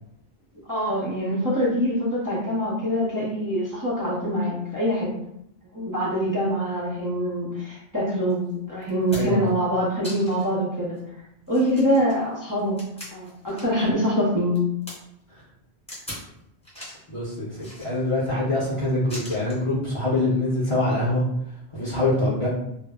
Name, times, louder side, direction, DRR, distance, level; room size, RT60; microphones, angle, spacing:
voice 1, 0.7-5.1 5.7-11.0 11.5-12.8 13.1-14.6, equal, 25° right, -8 dB, 0.6 m, -24 dB
sound 1, 8.3-8.4 8.8-9.5 10.0-10.5 11.0-11.1 11.5-13.9 14.2-15.0 15.9-16.3 16.6-17.1 17.6-18.3 19.1-19.6 20.7-20.9, equal, 5° left, 0.9 m, -40 dB
voice 2, 9.1-9.5 17.1-21.2 21.7-22.5, left 2 dB, 35° left, -9 dB, 0.6 m, -24 dB
2.1 x 2.0 x 3.5 m, 0.78 s
omnidirectional pair, 1.1 m